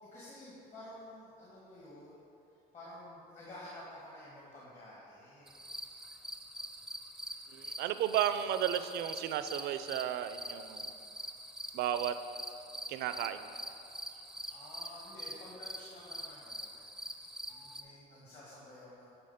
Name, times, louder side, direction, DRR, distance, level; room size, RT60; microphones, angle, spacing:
voice 1, 0.0-2.2 2.7-5.7 14.5-16.8 17.5-19.1, left 1 dB, 45° left, -6 dB, 1.8 m, -51 dB
sound 1, 5.5-17.8, equal, 5° right, 0.5 m, -45 dB
voice 2, 7.5-10.9 11.7-12.2 12.9-13.4, right 11 dB, 75° right, 11 dB, 0.4 m, -33 dB
9.8 x 3.5 x 5.7 m, 2.7 s
cardioid pair, 110°, 17 cm